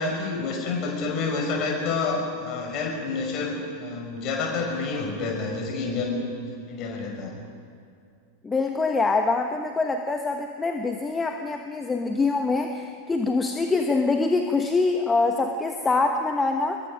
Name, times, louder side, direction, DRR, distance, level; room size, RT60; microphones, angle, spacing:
voice 1, 0.0-6.2 6.7-7.4, left 4 dB, 40° left, 1 dB, 5.9 m, -28 dB
voice 2, 8.4-16.8, left 3 dB, 15° left, 5 dB, 1.2 m, -24 dB
26.5 x 22.0 x 5.3 m, 2.3 s
figure-of-eight pair, 90°, 0 cm